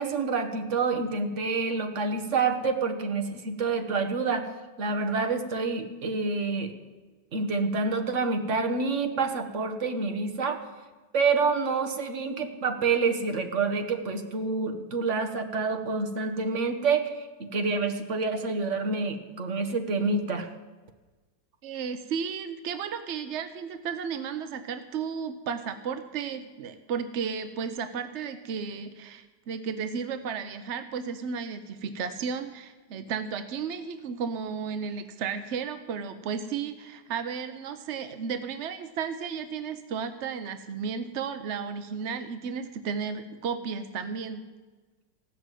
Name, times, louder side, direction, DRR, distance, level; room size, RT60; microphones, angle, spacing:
voice 1, 0.0-4.5 4.8-6.7 7.3-10.6 11.1-20.5, right 4 dB, 45° right, 6 dB, 1.3 m, -27 dB
voice 2, 21.6-44.4, right 6 dB, 65° right, 10 dB, 0.7 m, -33 dB
16.0 x 6.2 x 9.0 m, 1.3 s
omnidirectional pair, 2.0 m